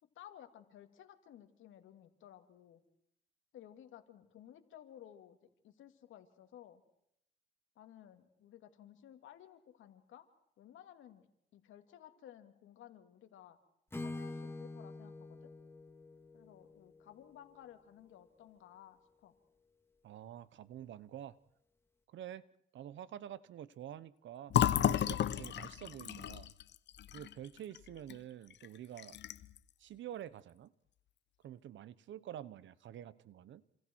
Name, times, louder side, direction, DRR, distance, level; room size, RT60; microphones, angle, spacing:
voice 1, 0.1-2.8 3.5-6.8 7.8-10.3 10.6-13.6 14.0-15.5 16.3-19.3, left 11 dB, 80° left, 6 dB, 2.8 m, -56 dB
Acoustic guitar / Strum, 13.9-17.9, left 2 dB, 10° left, 2.3 m, -46 dB
voice 2, 20.0-21.4 22.1-22.4 22.7-26.5 27.1-29.2 29.8-30.7 31.4-33.7, right 11 dB, 70° right, 17 dB, 1.1 m, -48 dB
Fill (with liquid), 24.5-28.2 28.5-28.7 29.0-29.6, left 11 dB, 60° left, 0.9 m, -33 dB
28.0 x 27.0 x 4.7 m, 0.77 s
cardioid pair, 90°, 20 cm